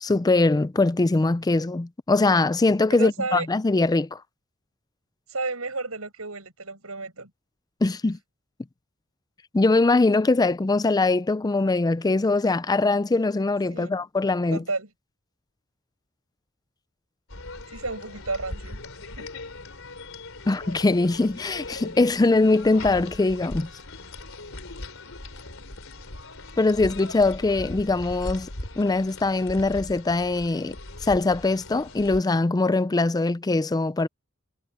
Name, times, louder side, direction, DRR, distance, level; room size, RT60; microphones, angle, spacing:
voice 1, 0.0-4.2 7.8-8.2 9.5-14.6 20.5-23.7 26.6-28.5 28.8-30.8 31.0-34.1, left 3 dB, 20° left, 0.4 m, -22 dB
voice 2, 2.9-3.5 5.3-7.3 13.7-13.9 14.5-14.9 17.7-18.8 19.2-19.3, right 3 dB, 85° right, 7.6 m, -32 dB
sound 1, 17.3-32.2, left 2 dB, 70° left, 3.9 m, -39 dB
head